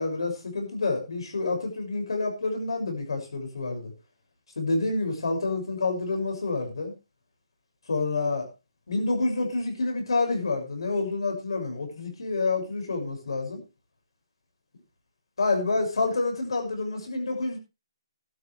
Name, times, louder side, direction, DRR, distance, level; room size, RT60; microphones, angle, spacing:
voice 1, 0.0-3.9 4.6-6.9 7.9-8.5 8.9-13.6 15.4-17.6, left 3 dB, 80° left, 4 dB, 6.4 m, -28 dB
13.5 x 12.5 x 3.4 m, 0.28 s
hypercardioid pair, 180°, 3 cm